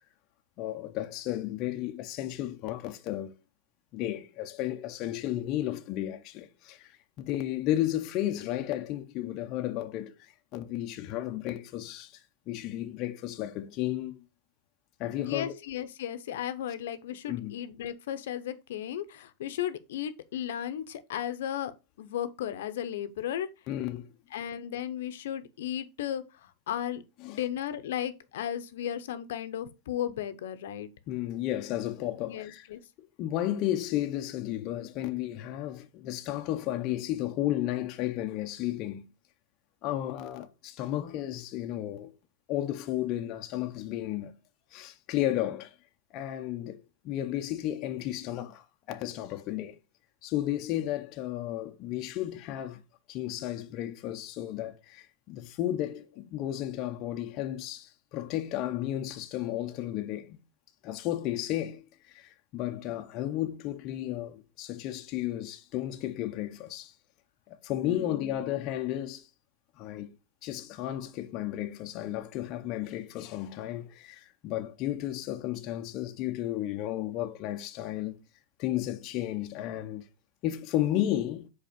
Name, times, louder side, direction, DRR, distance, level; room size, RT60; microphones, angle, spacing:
voice 1, 0.6-3.3 3.9-14.2 15.0-15.5 17.3-17.6 23.7-24.1 27.2-27.4 31.1-32.7 33.2-39.1 39.8-42.1 42.5-44.3 44.7-45.7 46.1-49.8 50.2-52.8 53.1-60.4 60.8-66.9 67.5-69.3 69.8-70.2 70.4-78.2 78.6-80.0 80.4-81.5, left 13 dB, 35° left, 0.6 m, -33 dB
voice 2, 15.1-23.5 24.3-27.0 27.3-30.9 32.3-32.8 67.8-68.5, left 10 dB, 70° left, 0.7 m, -35 dB
5.1 x 4.1 x 5.1 m
supercardioid pair, 150°, 0 cm